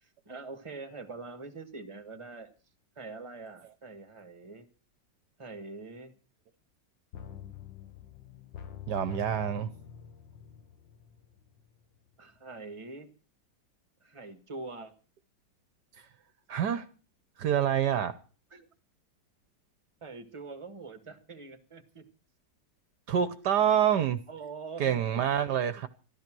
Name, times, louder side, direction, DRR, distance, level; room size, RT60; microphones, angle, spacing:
voice 1, 0.0-2.5 2.9-4.7 5.4-6.1 12.2-13.1 14.0-14.9 18.5-18.7 20.0-22.0 24.3-25.5, right 3 dB, 15° right, 1.5 m, -44 dB
sound 1, 7.1-11.8 12.1-12.2, left 8 dB, 90° left, 2.1 m, -46 dB
voice 2, 8.9-9.7 16.5-16.9 17.4-18.2 23.1-24.2 24.8-25.9, right 9 dB, 65° right, 1.4 m, -27 dB
13.5 x 13.0 x 6.1 m
omnidirectional pair, 2.0 m